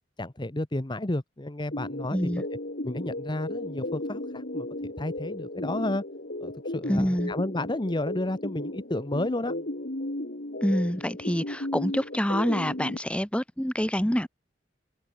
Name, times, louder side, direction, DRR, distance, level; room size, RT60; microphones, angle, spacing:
voice 1, 0.2-2.4 2.8-6.0 6.4-9.5, left 1 dB, 25° left, 1.1 m, -31 dB
sound 1, 1.7-13.0, left 1 dB, 55° left, 2.5 m, -35 dB
voice 2, 2.1-2.4 6.9-7.3 10.6-14.3, equal, 5° left, 1.7 m, -26 dB
open air
head